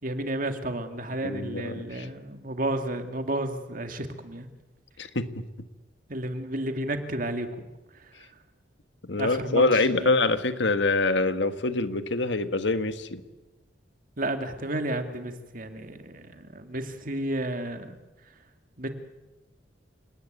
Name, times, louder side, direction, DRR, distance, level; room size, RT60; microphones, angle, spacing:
voice 1, 0.0-4.5 6.1-7.7 9.2-9.6 10.0-10.1 14.2-18.0 18.8-18.9, right 1 dB, 50° right, 7 dB, 2.3 m, -32 dB
voice 2, 1.2-2.1 5.0-5.4 9.1-13.2, left 3 dB, 80° left, 10 dB, 1.6 m, -25 dB
29.0 x 18.0 x 9.4 m, 1.1 s
head